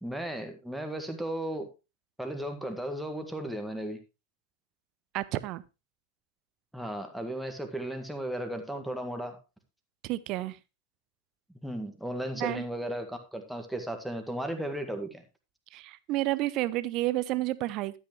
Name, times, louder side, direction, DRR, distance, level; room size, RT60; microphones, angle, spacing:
voice 1, 0.0-1.7 2.2-4.0 6.7-9.4 11.6-15.2, right 1 dB, ahead, 5 dB, 1.8 m, -35 dB
voice 2, 5.1-5.6 10.0-10.6 12.4-12.6 15.7-18.0, right 17 dB, 40° right, 17 dB, 0.7 m, -30 dB
12.5 x 8.6 x 3.2 m, 0.27 s
figure-of-eight pair, 90°, 0 cm